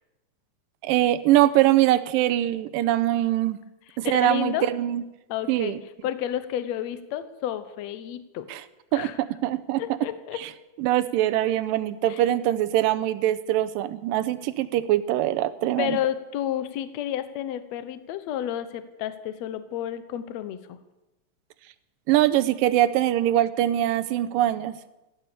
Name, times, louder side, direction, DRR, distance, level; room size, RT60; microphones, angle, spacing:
voice 1, 0.8-3.6 4.0-5.0 5.5-5.8 8.5-8.6 8.9-9.1 9.4-9.8 10.4-10.5 10.8-16.0 22.1-24.7, right 13 dB, 90° right, 12 dB, 2.5 m, -23 dB
voice 2, 4.0-4.7 5.3-5.8 6.0-8.6 8.9-9.2 9.8-10.4 12.1-12.2 15.8-20.8, left 11 dB, 65° left, 12 dB, 1.9 m, -31 dB
16.0 x 12.5 x 6.9 m, 0.99 s
omnidirectional pair, 3.8 m